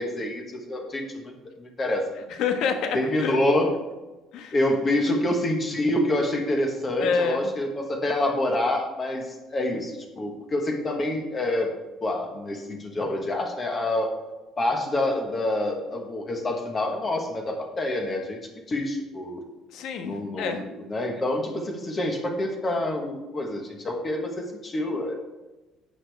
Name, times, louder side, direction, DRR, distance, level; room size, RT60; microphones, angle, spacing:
voice 1, 0.0-2.3 2.9-3.7 4.5-11.7 12.0-14.1 14.6-19.4 20.0-25.1, left 1 dB, 20° left, 3 dB, 1.3 m, -27 dB
voice 2, 2.3-3.4 4.3-4.5 7.0-7.5 19.7-20.6, left 5 dB, 55° left, 6 dB, 1.3 m, -27 dB
11.0 x 8.2 x 3.4 m, 1.1 s
cardioid pair, 180°, 0 cm